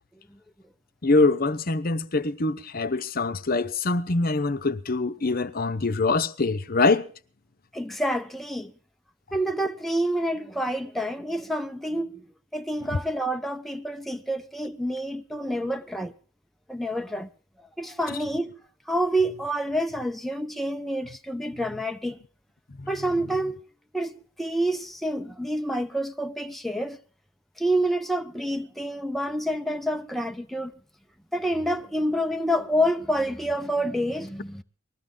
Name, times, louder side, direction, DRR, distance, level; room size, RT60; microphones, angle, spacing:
voice 1, 1.0-7.1 12.8-12.9 18.1-18.2 22.8-22.9, left 3 dB, 50° left, 0.9 m, -24 dB
voice 2, 7.7-8.7 9.3-12.2 12.5-16.1 16.7-17.3 17.8-18.6 18.9-22.2 22.9-23.6 23.9-27.0 27.6-30.7 31.3-34.6, equal, ahead, 0.7 m, -28 dB
20.5 x 14.0 x 3.8 m
head